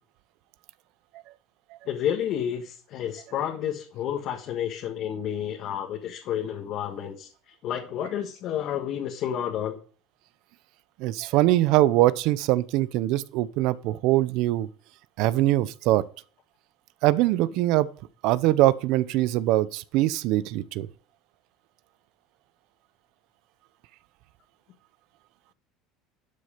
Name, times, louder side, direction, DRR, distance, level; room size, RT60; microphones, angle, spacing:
voice 1, 1.9-9.8, left 10 dB, 50° left, 1.5 m, -30 dB
voice 2, 11.0-14.7 15.2-16.0 17.0-17.9 18.2-20.9, right 15 dB, 65° right, 0.7 m, -22 dB
12.0 x 6.6 x 5.1 m
cardioid pair, 135°, 0 cm